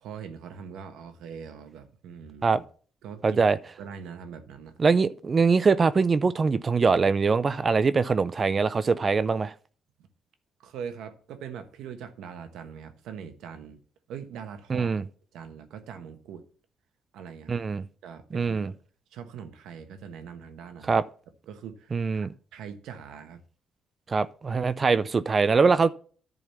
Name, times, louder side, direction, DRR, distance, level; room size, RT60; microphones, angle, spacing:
voice 1, 0.0-2.6 3.0-3.4 3.8-4.7 10.6-13.8 14.1-14.9 15.3-16.4 17.1-17.6 18.0-18.7 19.1-21.0 21.5-23.4, right 7 dB, 85° right, 1.2 m, -42 dB
voice 2, 3.2-3.6 4.8-9.5 14.7-15.0 17.5-17.8 18.3-18.7 20.9-21.0 21.9-22.3 24.1-25.9, right 4 dB, 35° right, 0.5 m, -23 dB
11.0 x 4.0 x 7.0 m
cardioid pair, 90°, 0 cm